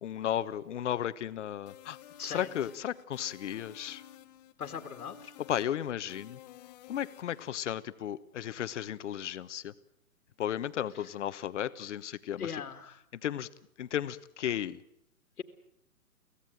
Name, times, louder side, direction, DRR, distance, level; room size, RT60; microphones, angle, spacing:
voice 1, 0.0-2.0 2.3-4.0 5.4-6.4 6.9-9.7 10.4-12.6 13.2-13.5 13.8-14.8, left 10 dB, 50° left, 14 dB, 1.2 m, -34 dB
sound 1, 1.7-7.5, left 12 dB, 30° left, 0.8 m, -52 dB
voice 2, 2.2-2.5 4.6-5.3 12.4-13.0 15.4-15.5, left 7 dB, 75° left, 8 dB, 2.1 m, -39 dB
25.0 x 16.5 x 9.2 m, 0.78 s
hypercardioid pair, 145°, 45 cm